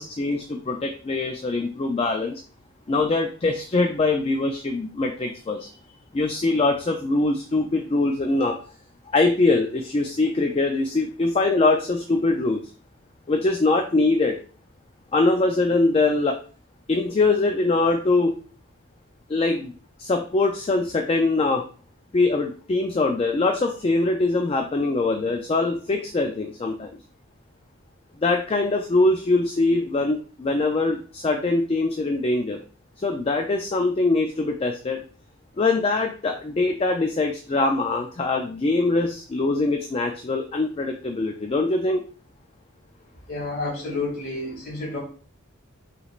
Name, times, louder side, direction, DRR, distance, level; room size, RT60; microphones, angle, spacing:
voice 1, 0.0-2.4 2.9-5.7 6.1-8.6 9.1-12.6 13.3-14.4 15.1-16.4 16.9-18.4 19.3-19.7 20.0-21.6 22.1-26.9 28.2-32.6 33.0-35.0 35.6-42.0, left 3 dB, 25° left, 4 dB, 0.3 m, -23 dB
voice 2, 43.3-45.0, left 2 dB, 45° left, -3 dB, 2.1 m, -30 dB
5.9 x 3.1 x 2.4 m, 0.41 s
head